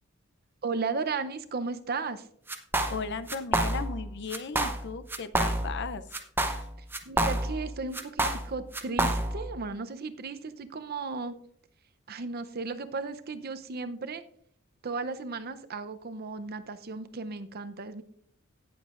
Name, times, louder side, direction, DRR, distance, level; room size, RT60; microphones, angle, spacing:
voice 1, 0.6-2.3 7.1-11.4 12.1-14.2 14.8-18.0, right 4 dB, 50° right, 11 dB, 0.6 m, -35 dB
sound 1, 2.5-3.0 3.3-4.0 4.3-4.8 5.1-5.8 6.1-7.6 7.9-9.5, right 1 dB, 10° right, 0.7 m, -28 dB
voice 2, 2.9-6.0 6.5-6.7, left 5 dB, 55° left, 12 dB, 0.6 m, -36 dB
17.5 x 7.1 x 2.5 m, 0.66 s
head